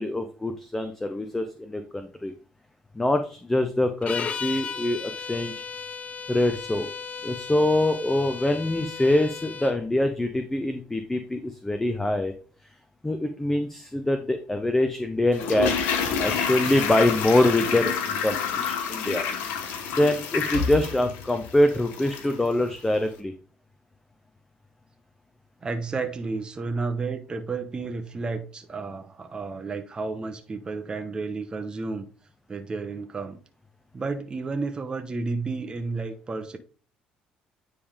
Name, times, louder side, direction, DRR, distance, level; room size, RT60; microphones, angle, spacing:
voice 1, 0.0-2.3 3.0-5.5 6.3-6.9 7.2-12.3 13.0-15.8 16.2-19.2 20.0-23.3, left 1 dB, 10° left, 0.7 m, -24 dB
sound 1, 4.0-9.8, left 6 dB, 45° left, 0.6 m, -35 dB
Toilet flush, 15.3-22.4 22.7-22.8, left 6 dB, 85° left, 1.1 m, -28 dB
voice 2, 25.6-32.1 32.5-33.4 33.9-36.6, right 4 dB, 30° right, 0.9 m, -31 dB
9.4 x 3.4 x 3.5 m
supercardioid pair, 90°, 3 cm